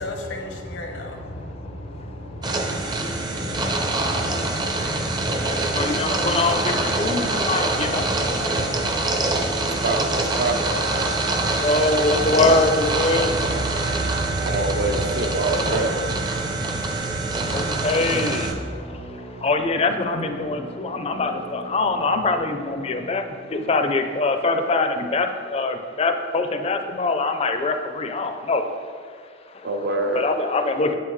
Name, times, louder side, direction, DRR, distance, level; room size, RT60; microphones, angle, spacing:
voice 1, 0.0-9.2, left 1 dB, 85° left, 0.9 m, -34 dB
sound 1, 2.4-18.5, right 2 dB, 25° right, 0.5 m, -24 dB
voice 2, 5.4-8.1 11.6-13.3 17.5-18.5 19.4-23.2 23.5-28.6 29.6-31.0, left 3 dB, 35° left, 0.4 m, -23 dB
sound 2, 6.9-25.0, right 1 dB, 85° right, 1.0 m, -42 dB
voice 3, 9.7-10.8 14.4-16.1 29.6-30.3, right 2 dB, 60° right, 0.6 m, -25 dB
8.1 x 5.7 x 3.1 m
head